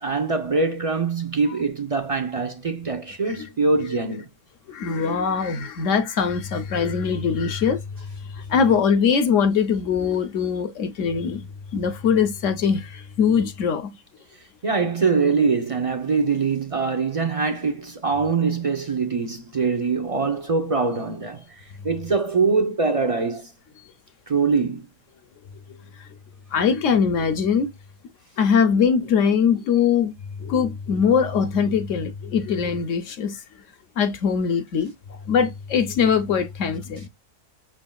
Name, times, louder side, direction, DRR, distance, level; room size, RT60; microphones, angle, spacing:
voice 1, 0.0-4.3 14.6-23.5 24.3-24.8, right 4 dB, 55° right, 0.3 m, -23 dB
voice 2, 4.7-7.8 8.3-11.5 11.7-13.9 26.5-27.7 28.4-30.1 30.4-33.4 34.0-34.9 35.3-37.1, left 6 dB, 65° left, 0.9 m, -22 dB
6.2 x 3.6 x 2.3 m
omnidirectional pair, 1.6 m